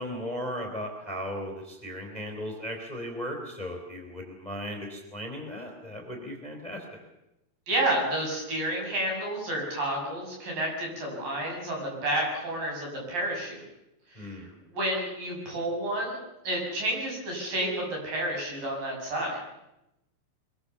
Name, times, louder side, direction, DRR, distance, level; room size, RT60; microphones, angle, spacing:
voice 1, 0.0-7.0 14.1-14.5, equal, 10° left, 3 dB, 3.0 m, -36 dB
voice 2, 7.7-13.6 14.1-14.4 14.7-16.2 16.4-19.4, right 1 dB, 55° right, -1 dB, 8.3 m, -30 dB
24.0 x 21.5 x 7.0 m, 0.90 s
omnidirectional pair, 4.9 m